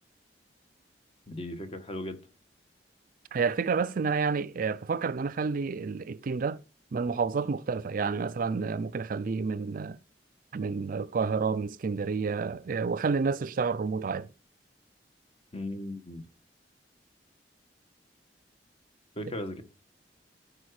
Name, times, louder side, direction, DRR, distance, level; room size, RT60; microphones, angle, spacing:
voice 1, 1.3-2.2 15.5-16.2 19.1-19.6, left 1 dB, 35° left, 1.3 m, -37 dB
voice 2, 3.3-6.6 6.9-10.0 10.5-14.3, right 5 dB, 50° right, 0.4 m, -29 dB
13.0 x 5.1 x 4.8 m
head